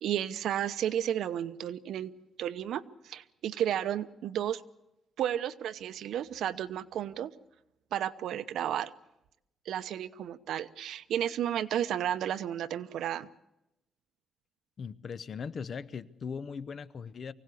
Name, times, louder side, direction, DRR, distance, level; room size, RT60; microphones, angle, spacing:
voice 1, 0.0-4.6 5.2-7.3 7.9-8.9 9.7-13.3, right 10 dB, 85° right, 14 dB, 0.8 m, -33 dB
voice 2, 14.8-17.3, left 6 dB, 45° left, 16 dB, 0.8 m, -39 dB
24.0 x 17.0 x 8.4 m, 0.88 s
cardioid pair, 145°, 0 cm